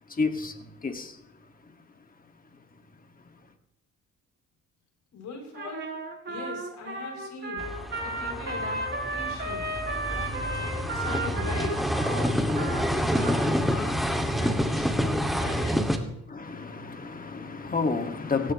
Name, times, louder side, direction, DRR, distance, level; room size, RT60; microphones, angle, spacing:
voice 1, 0.2-0.5 0.8-1.1 16.3-18.5, left 4 dB, 30° left, 2.2 m, -30 dB
voice 2, 5.1-5.9 6.3-7.7 8.0-9.7 10.0-11.8 12.2-15.9, left 3 dB, 70° left, 7.6 m, -40 dB
Trumpet, 5.5-13.8, right 2 dB, 40° right, 4.1 m, -34 dB
sound 1, 7.6-16.0, equal, ahead, 2.3 m, -28 dB
18.0 x 17.5 x 3.2 m
cardioid pair, 90°, 30 cm